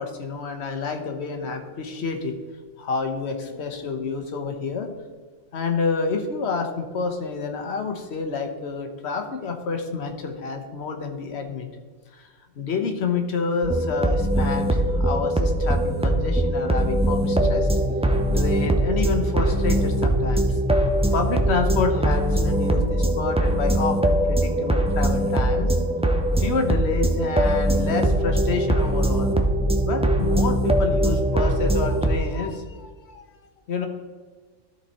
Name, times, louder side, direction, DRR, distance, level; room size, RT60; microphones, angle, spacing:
voice 1, 0.0-2.4 2.8-4.9 5.5-11.7 12.1-12.3 12.6-17.7 18.3-25.7 26.4-29.4 29.8-33.2 33.7-33.9, left 4 dB, 65° left, 4 dB, 1.2 m, -28 dB
sound 1, 13.6-32.1, right 1 dB, 10° right, 0.4 m, -21 dB
13.0 x 4.4 x 4.2 m, 1.5 s
omnidirectional pair, 1.3 m